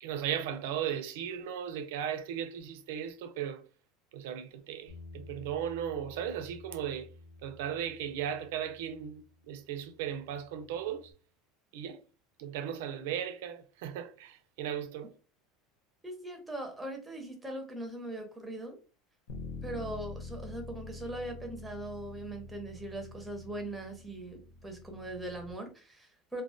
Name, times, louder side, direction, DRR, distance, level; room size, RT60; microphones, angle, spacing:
voice 1, 0.0-3.6 4.1-7.1 7.4-11.1 11.7-12.0 12.4-15.1, right 9 dB, 85° right, 0.4 m, -36 dB
Bass guitar, 4.9-11.1, left 2 dB, 50° left, 0.9 m, -53 dB
voice 2, 16.0-18.8 19.6-26.4, right 1 dB, 5° right, 0.6 m, -40 dB
Bass guitar 2, 19.3-25.5, left 3 dB, 75° left, 0.4 m, -46 dB
2.3 x 2.2 x 2.4 m
supercardioid pair, 145°, 0 cm